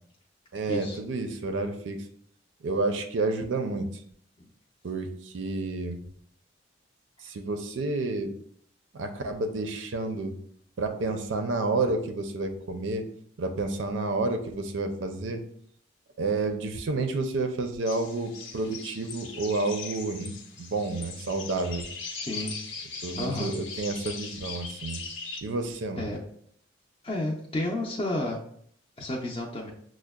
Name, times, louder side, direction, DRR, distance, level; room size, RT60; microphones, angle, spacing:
voice 1, 0.5-2.0 2.6-4.0 4.8-6.0 7.2-8.3 8.9-10.4 10.8-13.1 13.4-15.4 16.2-20.3 20.6-21.9 23.0-25.0 25.4-26.1, right 3 dB, 90° right, 6 dB, 0.5 m, -30 dB
sound 1, 17.8-25.4, left 4 dB, 75° left, 0.6 m, -40 dB
voice 2, 22.2-22.6 23.2-23.5 26.0-26.2 27.0-28.4 29.0-29.7, left 1 dB, 30° left, -3 dB, 0.4 m, -31 dB
6.2 x 2.1 x 2.2 m, 0.63 s
head